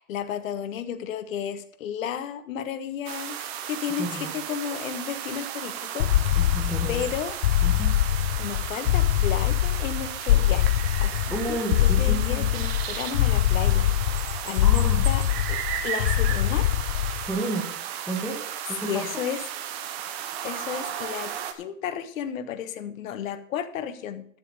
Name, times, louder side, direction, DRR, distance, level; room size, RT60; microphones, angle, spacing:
voice 1, 0.0-6.4 6.9-7.4 8.4-11.2 11.5-13.9 14.2-15.6 15.8-16.7 18.8-19.4 20.4-24.3, left 9 dB, 55° left, 10 dB, 1.5 m, -33 dB
sound 1, 3.1-21.5, right 9 dB, 40° right, 1.3 m, -34 dB
voice 2, 4.0-4.4 6.3-7.0 7.6-8.0 11.3-12.5 14.6-15.1 17.2-17.7 18.1-18.4 18.7-19.2, right 2 dB, ahead, -3 dB, 1.7 m, -31 dB
sound 2, 6.0-17.4, left 13 dB, 85° left, 0.6 m, -23 dB
10.5 x 7.2 x 6.5 m, 0.62 s
hypercardioid pair, 145°, 47 cm